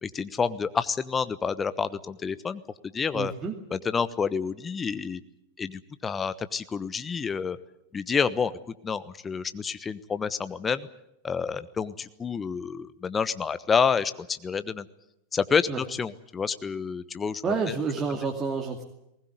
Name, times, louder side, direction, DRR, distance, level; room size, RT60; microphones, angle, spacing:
voice 1, 0.0-2.6 2.9-3.3 3.7-5.2 5.6-7.6 7.9-8.5 8.8-10.9 11.2-14.9 15.3-17.7, left 6 dB, 20° left, 13 dB, 1.1 m, -28 dB
voice 2, 3.1-3.5 15.7-15.8 17.4-18.8, right 5 dB, 20° right, 1 dB, 2.5 m, -29 dB
20.5 x 19.5 x 9.6 m, 0.85 s
figure-of-eight pair, 90°, 0 cm